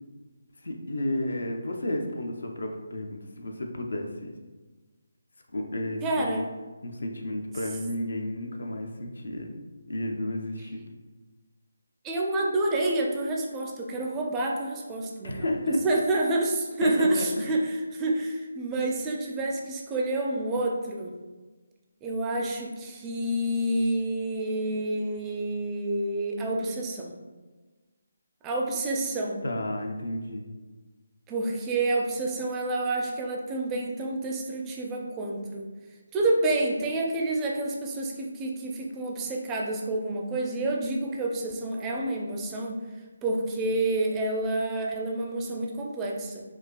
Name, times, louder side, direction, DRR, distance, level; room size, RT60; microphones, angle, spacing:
voice 1, 0.6-4.3 5.5-6.3 6.8-9.5 9.9-10.8 15.2-16.0 16.8-17.5 29.4-30.5, left 1 dB, 75° left, 2 dB, 0.5 m, -32 dB
voice 2, 6.0-6.4 12.0-21.1 22.0-27.1 28.4-29.4 31.3-35.6 36.1-42.8 43.2-46.4, right 2 dB, 15° right, 0 dB, 0.4 m, -28 dB
4.6 x 2.3 x 2.2 m, 1.3 s
figure-of-eight pair, 155°, 0 cm